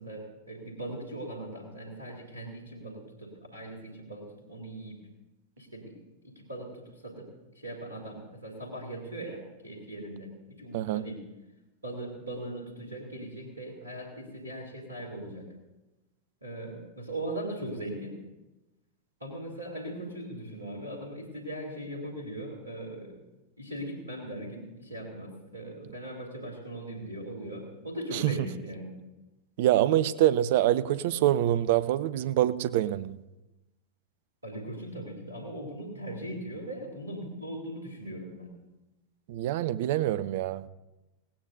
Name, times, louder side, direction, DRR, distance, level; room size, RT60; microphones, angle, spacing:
voice 1, 0.0-5.0 5.6-6.0 6.2-10.3 10.6-11.2 11.8-15.5 16.4-18.2 19.2-23.2 23.6-28.9 34.4-38.6, right 1 dB, 80° right, 0 dB, 2.8 m, -39 dB
voice 2, 29.6-33.2 39.3-40.7, right 13 dB, 50° right, 16 dB, 0.5 m, -25 dB
18.5 x 17.0 x 2.7 m, 1.0 s
figure-of-eight pair, 90°, 0 cm